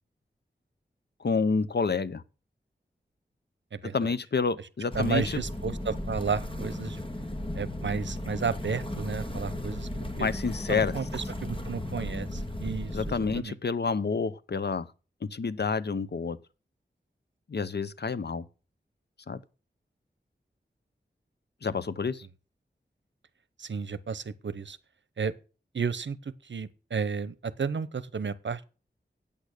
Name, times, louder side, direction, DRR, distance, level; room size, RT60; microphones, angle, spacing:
voice 1, 1.2-2.2 3.9-5.4 10.1-10.9 12.9-14.9 15.2-16.4 17.5-18.4 19.3-19.4 21.6-22.3, left 4 dB, 60° left, 0.8 m, -29 dB
voice 2, 3.7-4.1 4.9-7.0 7.5-9.9 10.2-10.3 10.7-13.0 13.3-13.5 23.6-24.8 25.2-25.3 25.7-28.6, right 5 dB, 75° right, 0.8 m, -32 dB
sound 1, 4.9-13.4, left 1 dB, 25° left, 2.0 m, -35 dB
8.8 x 8.5 x 6.6 m
wide cardioid pair, 55°, 19 cm